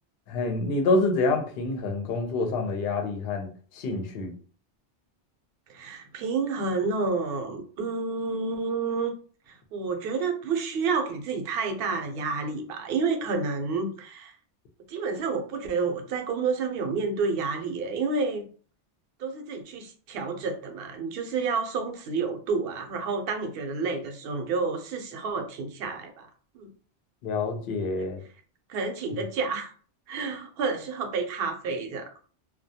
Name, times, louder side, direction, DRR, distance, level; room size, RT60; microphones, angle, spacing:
voice 1, 0.3-4.3 27.2-28.2, left 3 dB, 65° left, 5 dB, 0.7 m, -27 dB
voice 2, 5.7-9.1 9.5-14.3 14.9-18.5 19.2-26.3 26.5-26.7 28.0-28.1 28.7-29.7 30.1-32.1, right 4 dB, 65° right, 4 dB, 0.7 m, -29 dB
2.2 x 2.2 x 2.7 m, 0.41 s
omnidirectional pair, 1.2 m